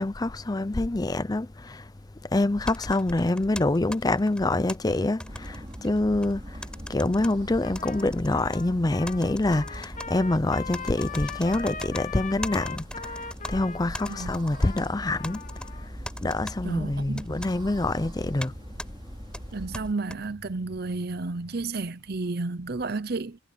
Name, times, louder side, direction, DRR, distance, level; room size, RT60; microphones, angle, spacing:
voice 1, 0.0-1.9 2.2-18.5 19.6-19.7, left 2 dB, 20° left, 0.5 m, -26 dB
sound 1, 2.7-4.8 5.2-6.3 6.6-7.3 7.8-8.6 9.1-10.1 10.7-12.0 12.4-13.5 13.9-14.9 15.2-15.7 16.1-16.6 17.2-17.5 18.4-18.5 18.8-18.9 19.3-20.2, left 1 dB, 5° left, 6.1 m, -39 dB
sound 2, 5.2-19.9, equal, 25° right, 3.4 m, -41 dB
Trumpet, 7.6-15.9, left 5 dB, 40° left, 1.2 m, -40 dB
voice 2, 16.6-17.3 19.5-23.4, right 3 dB, 55° right, 0.8 m, -32 dB
head